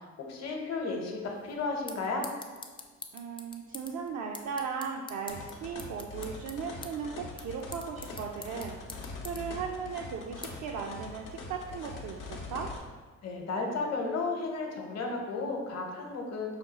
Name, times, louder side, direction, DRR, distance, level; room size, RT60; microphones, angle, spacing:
voice 1, 0.3-2.3 13.2-16.6, left 3 dB, 60° left, 1 dB, 0.9 m, -33 dB
sound 1, 1.2-11.7, left 3 dB, 15° left, 0.4 m, -49 dB
voice 2, 3.1-8.8 9.2-12.7, right 6 dB, 70° right, 1 dB, 0.5 m, -37 dB
sound 2, 5.3-12.8, left 3 dB, 90° left, 0.8 m, -43 dB
5.1 x 2.3 x 4.0 m, 1.5 s
cardioid pair, 90°, 30 cm